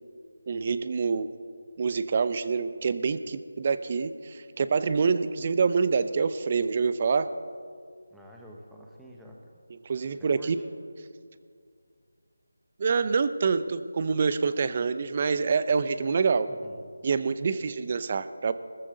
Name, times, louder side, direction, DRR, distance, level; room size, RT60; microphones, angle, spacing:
voice 1, 0.5-1.3 1.8-7.3 9.8-10.6 12.8-16.5 17.0-18.5, right 5 dB, 35° right, 13 dB, 0.6 m, -26 dB
voice 2, 8.1-9.5 10.1-10.7 16.5-16.8, equal, ahead, -2 dB, 1.2 m, -49 dB
19.0 x 14.5 x 3.9 m, 2.2 s
figure-of-eight pair, 165°, 0 cm